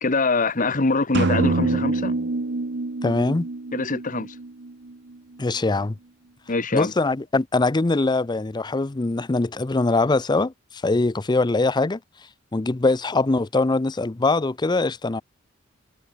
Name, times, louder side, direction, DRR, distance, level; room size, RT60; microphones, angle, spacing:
voice 1, 0.0-2.2 3.7-4.3 6.5-6.9, left 3 dB, 40° left, 1.3 m, -23 dB
sound 1, 1.1-4.9, right 2 dB, 60° right, 1.0 m, -26 dB
voice 2, 3.0-3.5 5.4-6.0 6.7-10.5 10.8-12.0 12.5-15.2, left 3 dB, 20° left, 0.5 m, -22 dB
head